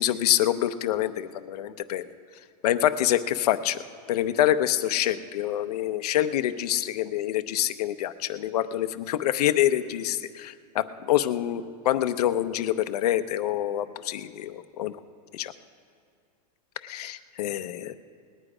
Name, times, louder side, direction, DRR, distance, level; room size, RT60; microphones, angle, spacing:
voice 1, 0.0-2.0 2.6-3.8 4.1-15.0 15.3-15.5 16.8-17.9, left 12 dB, 70° left, 12 dB, 0.7 m, -26 dB
19.5 x 9.9 x 4.9 m, 2.3 s
supercardioid pair, 165°, 21 cm